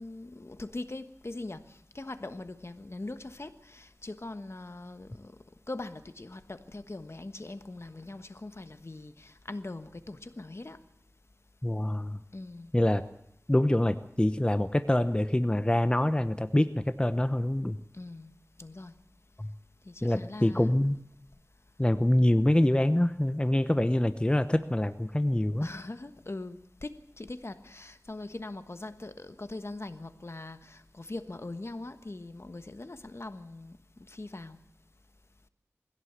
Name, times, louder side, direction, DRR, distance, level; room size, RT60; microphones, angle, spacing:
voice 1, 0.0-5.3 5.7-10.8 12.3-12.7 18.0-18.3 18.6-18.9 19.9-20.7 25.6-33.8 34.1-34.6, left 2 dB, 55° left, 1.3 m, -41 dB
voice 2, 11.6-12.2 12.7-13.0 13.5-17.8 19.4-19.5 20.0-21.0 21.8-25.7, left 1 dB, 20° left, 0.8 m, -25 dB
21.0 x 16.5 x 8.2 m
wide cardioid pair, 45°, 5 cm